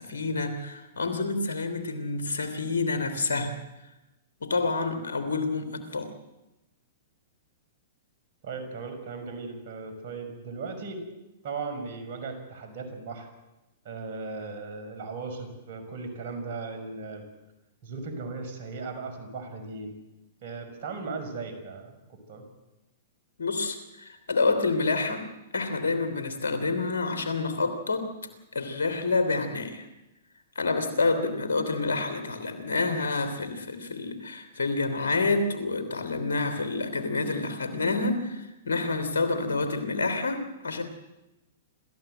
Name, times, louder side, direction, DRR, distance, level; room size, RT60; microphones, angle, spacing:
voice 1, 0.0-3.5 4.4-6.1 23.4-25.3 25.5-28.1 28.5-29.9 30.5-40.8, left 3 dB, 80° left, 9 dB, 3.1 m, -28 dB
voice 2, 8.4-11.0 11.4-13.3 13.8-17.2 17.8-20.0 20.4-22.4, right 4 dB, 55° right, 6 dB, 6.0 m, -37 dB
27.5 x 14.0 x 7.9 m, 1.0 s
hypercardioid pair, 115°, 0 cm